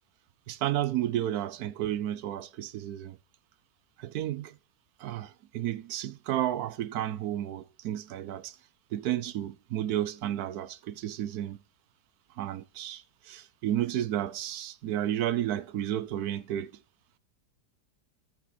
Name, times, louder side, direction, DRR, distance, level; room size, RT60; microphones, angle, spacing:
voice 1, 0.5-3.2 4.0-4.6 5.0-8.6 8.9-11.6 12.4-16.7, right 12 dB, 70° right, 1.1 m, -32 dB
13.5 x 5.8 x 4.0 m
omnidirectional pair, 1.7 m